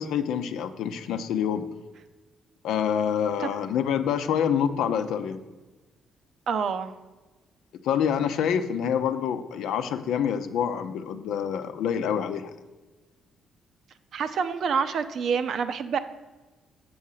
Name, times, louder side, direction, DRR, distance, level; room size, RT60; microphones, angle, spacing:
voice 1, 0.0-1.6 2.6-5.4 7.8-12.5, left 8 dB, 85° left, 9 dB, 0.6 m, -26 dB
voice 2, 6.5-6.9 14.1-16.0, right 6 dB, 65° right, 10 dB, 0.7 m, -27 dB
7.7 x 6.2 x 5.6 m, 1.2 s
cardioid pair, 90°, 0 cm